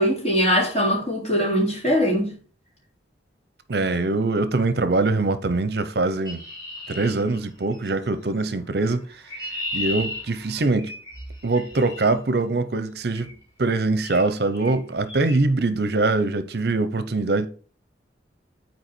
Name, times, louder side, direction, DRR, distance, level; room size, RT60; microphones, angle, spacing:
voice 1, 0.0-2.3, equal, 35° left, 3.5 m, -21 dB
voice 2, 3.7-6.4 6.9-9.2 9.7-10.9 11.4-13.3 13.6-17.5, right 3 dB, 60° right, 0.7 m, -23 dB
Chirp tweet, 6.2-7.9 8.9-12.0 13.1-13.4 14.0-14.3 14.5-14.8 15.1-15.4, left 1 dB, 20° left, 4.7 m, -35 dB
9.6 x 4.6 x 4.4 m
head